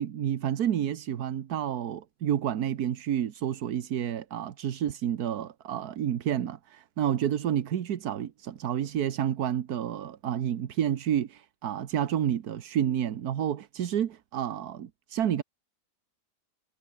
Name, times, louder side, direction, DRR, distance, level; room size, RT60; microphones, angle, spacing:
voice 1, 0.0-15.4, right 10 dB, 65° right, 1.5 m, -30 dB
omnidirectional pair, 1.9 m